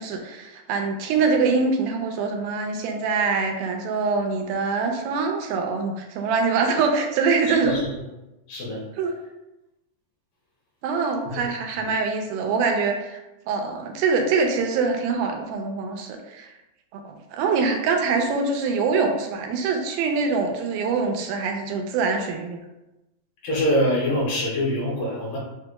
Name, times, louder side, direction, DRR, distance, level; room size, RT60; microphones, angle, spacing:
voice 1, 0.0-7.8 9.0-9.1 10.8-13.2 13.5-16.5 16.9-22.6, right 4 dB, 85° right, 3 dB, 2.5 m, -24 dB
voice 2, 7.5-7.9 8.5-8.8 11.3-11.4 23.4-25.4, equal, 70° left, -5 dB, 2.8 m, -24 dB
6.8 x 2.9 x 2.2 m, 0.98 s
omnidirectional pair, 4.3 m